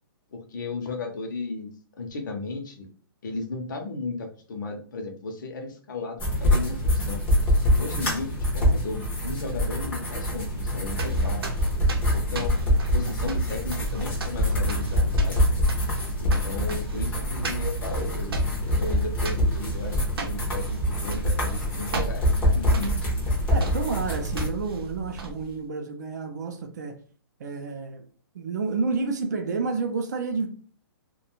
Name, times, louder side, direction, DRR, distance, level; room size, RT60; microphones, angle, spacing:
voice 1, 0.3-1.7 2.0-2.9 3.2-7.2 7.8-11.5 12.1-15.4 16.2-22.3 22.5-23.0, left 4 dB, 55° left, 0.6 m, -35 dB
sound 1, 6.2-24.5, left 1 dB, 10° left, 0.6 m, -25 dB
sound 2, 10.5-25.6, right 2 dB, 80° right, 0.7 m, -34 dB
voice 2, 23.5-27.0 27.4-28.1 28.3-30.5, right 4 dB, 45° right, 0.4 m, -30 dB
2.4 x 2.2 x 2.9 m
hypercardioid pair, 175°, 12 cm